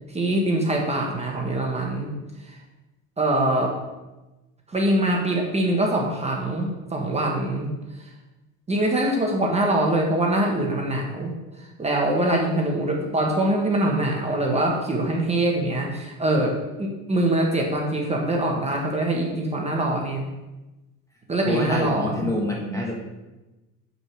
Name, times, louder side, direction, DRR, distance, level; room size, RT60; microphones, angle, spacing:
voice 1, 0.1-2.1 3.2-3.7 4.7-7.7 8.7-11.3 11.8-20.2 21.3-22.3, right 1 dB, 15° right, 0 dB, 1.2 m, -23 dB
voice 2, 21.5-22.9, left 1 dB, 5° left, -1 dB, 1.2 m, -27 dB
5.3 x 4.9 x 6.2 m, 1.1 s
supercardioid pair, 115°, 40 cm